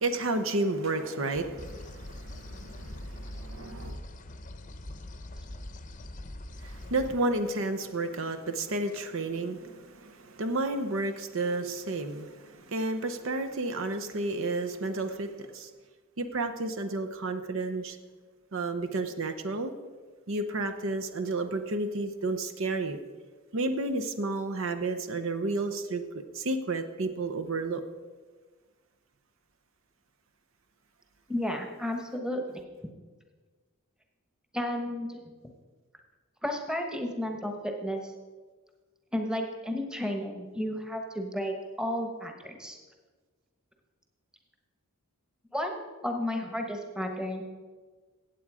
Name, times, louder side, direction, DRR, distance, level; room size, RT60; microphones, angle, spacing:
voice 1, 0.0-4.0 6.6-15.7 16.2-18.0 18.5-19.7 20.3-23.0 23.5-26.0 26.3-27.8, right 2 dB, 60° right, 7 dB, 0.8 m, -31 dB
sound 1, 1.6-7.1, left 1 dB, 35° left, 0.8 m, -42 dB
voice 2, 31.3-32.6 34.5-35.5 36.4-38.1 39.1-42.8 45.5-47.4, left 1 dB, 5° right, 4 dB, 1.1 m, -33 dB
15.5 x 8.4 x 4.9 m, 1.4 s
head